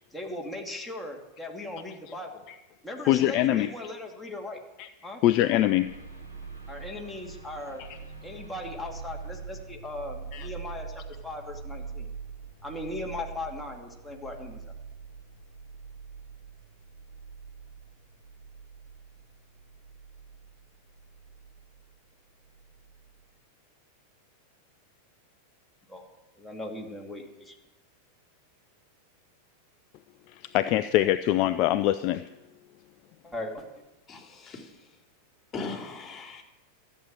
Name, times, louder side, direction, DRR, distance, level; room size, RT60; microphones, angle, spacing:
voice 1, 0.1-2.4 2.8-4.6 5.0-5.2 6.7-7.8 8.2-12.1 12.6-14.6 25.9-26.0 26.4-27.6 33.2-33.7, left 1 dB, 5° left, -1 dB, 2.7 m, -38 dB
voice 2, 3.1-3.7 4.8-4.9 5.2-5.9 10.3-10.5 30.4-32.2, left 13 dB, 40° left, 12 dB, 0.5 m, -23 dB
sound 1, 5.8-21.9 22.4-23.2, right 5 dB, 85° right, 3.1 m, -44 dB
voice 3, 34.1-35.0 35.5-36.4, left 4 dB, 25° left, 2 dB, 3.1 m, -39 dB
14.0 x 8.1 x 8.9 m, 1.0 s
figure-of-eight pair, 90°, 0 cm